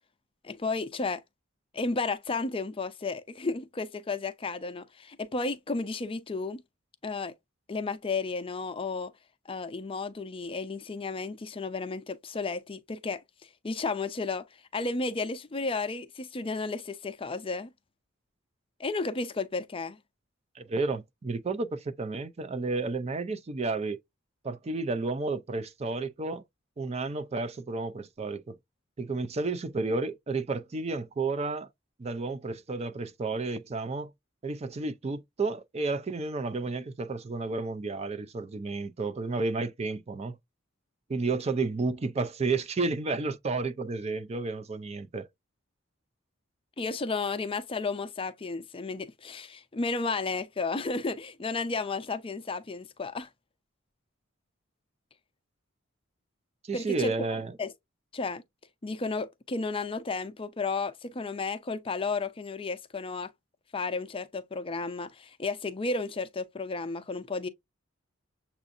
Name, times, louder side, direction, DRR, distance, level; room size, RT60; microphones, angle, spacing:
voice 1, 0.4-1.2 1.7-6.6 7.0-7.3 7.7-9.1 9.5-14.5 14.7-17.7 18.8-20.0 46.8-53.3 56.7-57.3 57.6-57.7 58.1-58.4 58.8-63.3 63.7-67.5, left 3 dB, 25° left, 0.5 m, -33 dB
voice 2, 20.5-24.0 24.4-26.4 26.8-28.6 29.0-31.7 32.0-34.1 34.4-40.4 41.1-45.3 56.6-57.6, right 3 dB, 30° right, 0.4 m, -31 dB
7.1 x 2.6 x 2.5 m
head